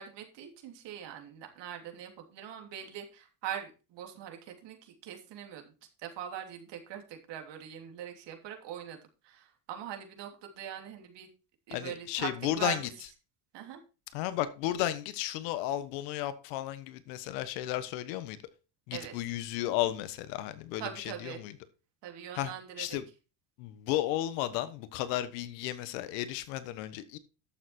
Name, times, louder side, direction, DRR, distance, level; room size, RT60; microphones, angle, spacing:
voice 1, 0.0-5.7 6.0-9.0 9.2-11.3 11.7-12.9 13.5-13.8 18.9-19.1 20.7-21.4 22.0-23.0, right 10 dB, 60° right, 3.2 m, -42 dB
voice 2, 11.7-12.8 14.1-18.4 18.9-21.5 22.3-22.5 22.8-23.0 23.6-27.2, left 13 dB, 80° left, 1.4 m, -33 dB
11.5 x 7.0 x 4.3 m
supercardioid pair, 105°, 48 cm